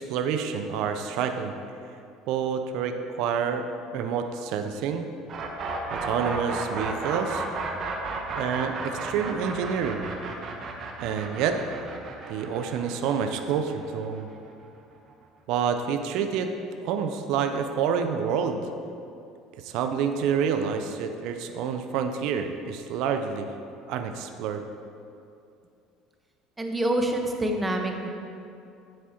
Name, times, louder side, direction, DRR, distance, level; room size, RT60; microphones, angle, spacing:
voice 1, 0.0-1.5 2.3-3.6 3.9-5.1 5.9-7.4 8.3-10.1 11.0-11.6 12.3-14.3 15.5-16.5 16.8-18.6 19.6-23.5 23.9-24.6, right 7 dB, 65° right, 7 dB, 0.5 m, -28 dB
sound 1, 5.3-15.1, right 4 dB, 45° right, 1.0 m, -34 dB
voice 2, 26.6-28.1, right 1 dB, 15° right, 3 dB, 1.1 m, -26 dB
9.7 x 7.4 x 2.9 m, 2.5 s
hypercardioid pair, 70°, 0 cm